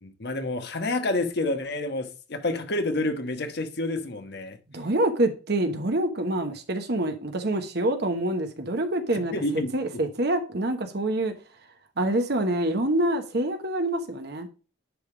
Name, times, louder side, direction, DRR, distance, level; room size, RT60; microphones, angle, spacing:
voice 1, 0.0-4.6 9.3-9.7, left 2 dB, 60° left, 1.3 m, -28 dB
voice 2, 4.7-9.3 9.7-11.3 12.0-14.5, right 1 dB, 60° right, 1.0 m, -26 dB
10.5 x 3.6 x 4.9 m
head